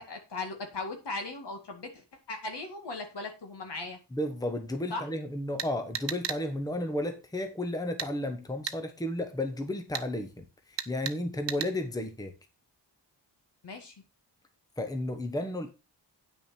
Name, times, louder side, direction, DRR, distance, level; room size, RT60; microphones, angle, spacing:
voice 1, 0.0-4.0 4.9-5.0 13.6-14.0, left 3 dB, 70° left, 2.3 m, -38 dB
voice 2, 4.1-12.3 14.8-15.7, left 1 dB, 10° left, 0.9 m, -33 dB
sound 1, 5.6-6.4 8.0-8.1 8.7-8.8 9.9-10.1 10.8-11.2 11.5-11.7, right 8 dB, 75° right, 0.9 m, -34 dB
9.2 x 6.2 x 4.4 m
wide cardioid pair, 170°, 43 cm